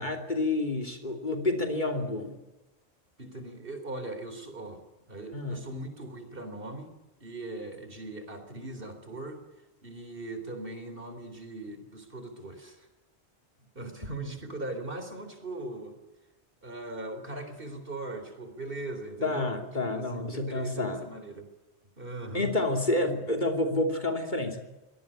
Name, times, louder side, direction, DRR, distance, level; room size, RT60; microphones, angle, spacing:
voice 1, 0.0-2.4 5.3-5.6 14.0-14.1 19.2-21.0 22.3-24.7, left 2 dB, 45° left, 4 dB, 3.0 m, -29 dB
voice 2, 3.2-4.8 5.1-6.9 7.2-9.4 9.8-12.9 13.6-16.0 16.6-19.6 19.9-21.5 22.0-22.5, right 2 dB, 55° right, 8 dB, 4.2 m, -39 dB
24.0 x 18.5 x 8.8 m, 1.0 s
omnidirectional pair, 1.1 m